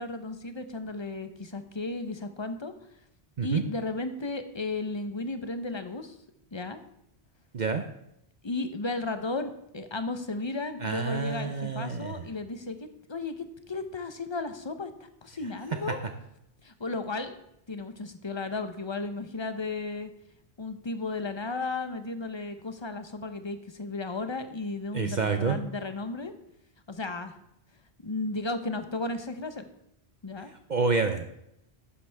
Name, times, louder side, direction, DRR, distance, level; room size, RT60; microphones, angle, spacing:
voice 1, 0.0-2.7 3.4-6.2 6.5-6.8 8.4-12.8 13.1-16.0 16.6-17.3 17.7-20.1 20.6-26.3 26.9-27.3 28.0-29.7 30.2-30.5, left 3 dB, 25° left, 9 dB, 0.8 m, -34 dB
voice 2, 10.8-12.2 24.9-25.6 30.7-31.3, right 5 dB, 45° right, 6 dB, 0.8 m, -28 dB
12.0 x 9.7 x 3.5 m, 0.78 s
omnidirectional pair, 1.1 m